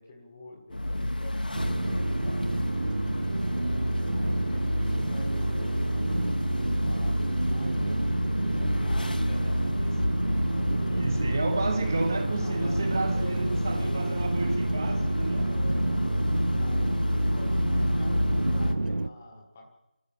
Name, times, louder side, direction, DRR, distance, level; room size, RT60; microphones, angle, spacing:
voice 1, 0.0-2.5 4.1-9.8 10.8-11.6 12.4-14.2 15.4-19.7, left 1 dB, 10° left, 1.4 m, -47 dB
sound 1, 0.7-18.7, left 1 dB, 90° left, 2.1 m, -30 dB
sound 2, 1.5-19.1, right 2 dB, 85° right, 0.8 m, -29 dB
voice 2, 11.0-15.5, right 2 dB, 20° right, 1.3 m, -31 dB
26.0 x 14.0 x 7.1 m
figure-of-eight pair, 180°, 5 cm